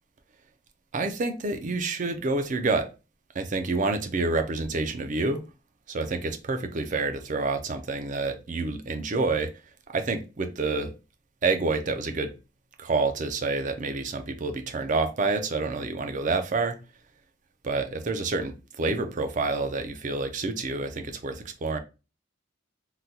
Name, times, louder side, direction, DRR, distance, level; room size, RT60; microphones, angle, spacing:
voice 1, 0.9-2.9 3.3-5.4 5.9-9.5 9.9-10.9 11.4-12.3 12.8-16.8 17.6-21.8, right 3 dB, 40° right, 0.5 m, -28 dB
3.8 x 2.2 x 2.7 m
head